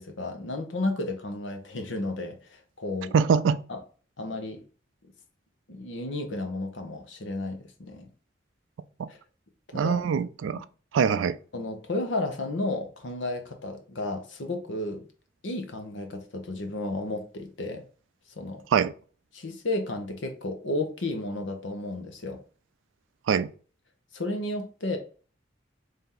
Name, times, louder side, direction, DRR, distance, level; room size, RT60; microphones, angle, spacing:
voice 1, 0.0-3.1 3.7-3.8 4.2-4.6 5.7-8.1 9.1-9.2 9.7-10.0 11.5-15.0 15.4-17.8 18.3-18.7 19.3-22.4 24.1-25.0, left 2 dB, 75° left, 0.9 m, -32 dB
voice 2, 3.1-3.6 9.0-9.1 9.7-10.6 10.9-11.4 18.7-18.9 23.3-23.5, right 6 dB, 85° right, 0.3 m, -23 dB
3.4 x 2.8 x 3.7 m
head